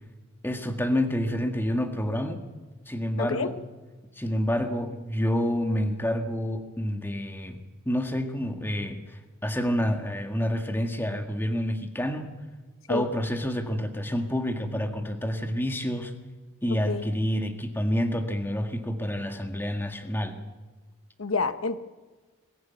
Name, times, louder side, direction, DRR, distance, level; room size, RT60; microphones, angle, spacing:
voice 1, 0.4-2.4 2.9-3.6 4.2-7.6 7.8-9.0 9.4-12.3 12.9-16.1 16.6-20.4, equal, 10° left, 4 dB, 1.7 m, -28 dB
voice 2, 3.2-3.5 12.9-13.0 16.9-17.0 21.2-21.8, left 4 dB, 90° left, 11 dB, 1.0 m, -28 dB
22.0 x 14.5 x 9.3 m, 1.3 s
head